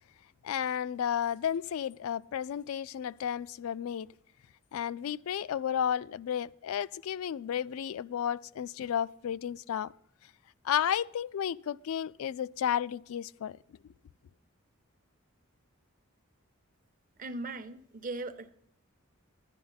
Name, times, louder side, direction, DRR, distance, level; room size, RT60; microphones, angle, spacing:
voice 1, 0.4-4.1 4.7-9.9 10.6-13.6, left 9 dB, 80° left, 0.3 m, -32 dB
voice 2, 17.2-18.5, right 2 dB, 40° right, 0.7 m, -38 dB
11.0 x 10.5 x 4.0 m
head